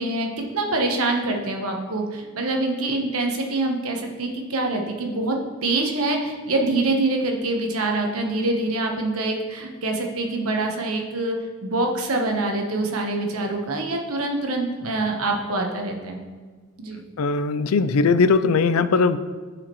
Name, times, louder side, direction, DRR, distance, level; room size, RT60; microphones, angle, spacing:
voice 1, 0.0-5.4 5.6-16.2 16.8-17.0, right 2 dB, 80° right, 2 dB, 1.2 m, -25 dB
voice 2, 17.2-19.2, left 4 dB, 80° left, 13 dB, 0.4 m, -19 dB
14.0 x 4.9 x 3.1 m, 1.5 s
head